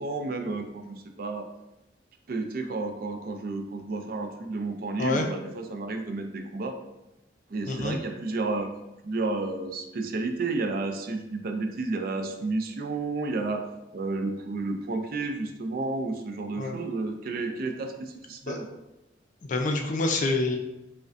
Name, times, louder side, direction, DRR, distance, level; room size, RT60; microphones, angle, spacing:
voice 1, 0.0-1.5 2.3-6.8 7.5-8.7 9.0-13.7 13.9-18.7, right 3 dB, 55° right, 5 dB, 0.4 m, -31 dB
voice 2, 7.7-8.0 16.6-16.8 18.5-18.6 19.5-20.6, left 2 dB, 45° left, 3 dB, 0.4 m, -27 dB
5.0 x 2.1 x 2.5 m, 0.95 s
head